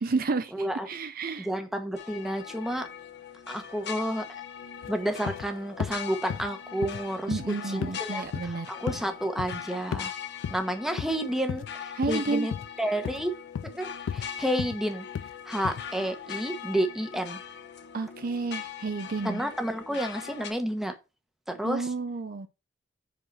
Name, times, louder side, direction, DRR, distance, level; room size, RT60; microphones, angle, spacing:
voice 1, 0.0-1.5 7.3-8.7 11.9-12.5 17.9-19.4 21.6-22.5, right 4 dB, 50° right, 0.5 m, -31 dB
voice 2, 0.5-0.9 1.4-2.9 3.5-4.2 4.9-10.1 10.5-12.5 12.8-13.3 13.7-15.1 15.4-17.4 19.2-20.9 21.5-21.9, right 1 dB, ahead, 1.1 m, -30 dB
sound 1, 2.0-20.5, left 8 dB, 65° left, 0.9 m, -41 dB
sound 2, 4.8-4.9 5.3-5.5 5.8-6.0 6.3-6.5 6.8-7.0 7.3-7.5 7.8-8.0 8.3-8.5 8.9-9.0 9.4-9.6 9.9-10.1 10.4-10.6 11.0-11.1 11.5-11.7 12.0-12.2 12.5-12.7 13.0-13.3 13.5-13.7 14.1-14.3 14.6-14.8 15.1-15.3 15.6-15.8, left 7 dB, 90° left, 0.3 m, -33 dB
5.1 x 4.7 x 6.1 m
head